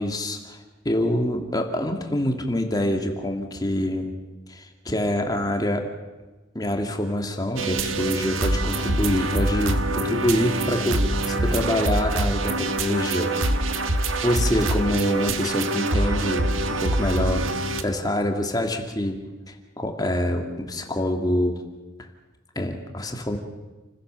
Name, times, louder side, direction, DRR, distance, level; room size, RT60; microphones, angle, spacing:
voice 1, 0.0-4.1 4.5-5.9 6.5-13.3 13.8-13.9 14.2-19.2 19.5-21.6 22.0-22.1 22.6-23.4, left 1 dB, 20° left, 3 dB, 2.3 m, -26 dB
sound 1, 7.6-17.8, right 2 dB, 85° right, 1.6 m, -25 dB
29.0 x 16.0 x 6.9 m, 1.2 s
head